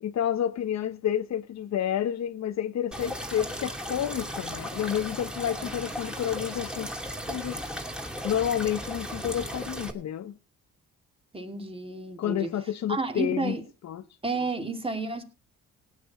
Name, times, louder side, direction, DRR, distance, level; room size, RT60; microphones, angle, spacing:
voice 1, 0.0-6.9 7.3-7.6 8.2-10.3 12.2-13.6 13.8-14.0, left 10 dB, 60° left, 0.9 m, -30 dB
sound 1, 2.9-9.9, equal, 5° right, 2.6 m, -36 dB
voice 2, 11.3-12.5 12.9-13.6 14.2-15.2, right 3 dB, 20° right, 2.6 m, -31 dB
17.0 x 9.3 x 4.2 m
cardioid pair, 90°, 30 cm